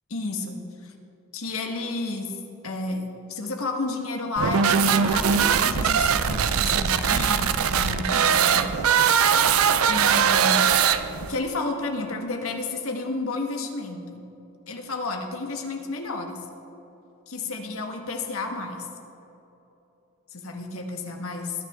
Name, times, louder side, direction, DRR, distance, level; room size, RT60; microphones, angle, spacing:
voice 1, 0.1-0.9 1.3-2.3 2.6-9.2 9.9-10.6 11.3-14.2 14.7-16.4 17.3-18.9 20.3-21.5, left 2 dB, 75° left, 3 dB, 1.7 m, -31 dB
sound 1, 4.4-11.4, right 7 dB, 80° right, 0.6 m, -21 dB
21.0 x 9.3 x 3.7 m, 3.0 s
head